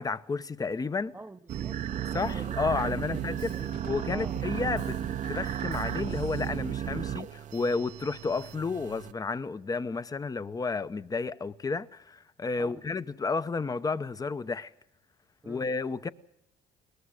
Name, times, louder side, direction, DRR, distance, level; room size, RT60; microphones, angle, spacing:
voice 1, 0.0-1.1 2.1-3.5 3.9-5.0 5.2-14.7 15.5-16.1, left 4 dB, 20° left, 0.8 m, -31 dB
voice 2, 1.1-3.2 3.5-3.8 4.1-4.4 12.6-12.8 15.4-15.7, right 2 dB, 10° right, 0.8 m, -46 dB
sound 1, 1.5-9.1, right 10 dB, 50° right, 0.7 m, -34 dB
Drum kit / Drum, 2.3-6.8, left 10 dB, 80° left, 0.9 m, -52 dB
21.5 x 20.0 x 6.4 m
cardioid pair, 110°, 17 cm